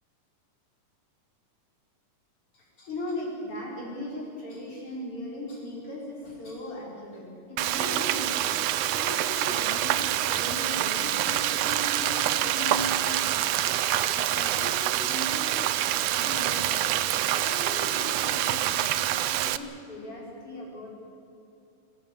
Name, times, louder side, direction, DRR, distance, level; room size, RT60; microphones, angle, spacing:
voice 1, 2.5-8.6 8.9-16.9 17.4-20.9, left 1 dB, 40° left, -3 dB, 6.1 m, -38 dB
Frying (food), 7.6-19.6, right 13 dB, 90° right, 1.4 m, -26 dB
26.5 x 15.5 x 8.6 m, 2.7 s
omnidirectional pair, 3.8 m